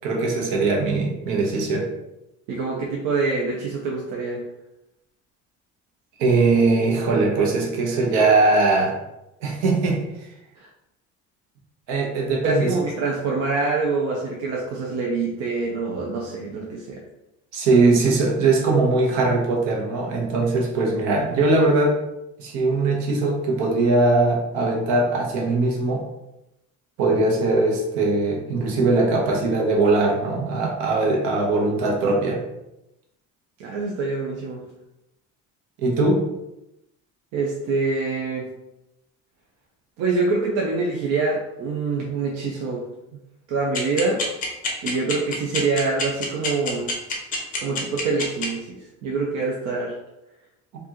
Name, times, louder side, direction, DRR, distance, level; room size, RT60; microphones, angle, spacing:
voice 1, 0.0-1.9 6.2-8.9 9.4-10.0 11.9-12.7 17.5-22.0 22.4-26.0 27.0-32.4 35.8-36.3, right 3 dB, 80° right, 0 dB, 1.0 m, -20 dB
voice 2, 2.5-4.4 10.6-10.7 12.4-17.0 33.6-34.6 37.3-38.5 40.0-42.8 43.5-44.2 44.8-46.9 47.6-50.0, right 3 dB, 60° right, -2 dB, 0.7 m, -25 dB
sound 1, 43.7-48.4, left 4 dB, 25° left, 0.7 m, -26 dB
4.5 x 2.6 x 2.9 m, 0.90 s
cardioid pair, 175°, 30 cm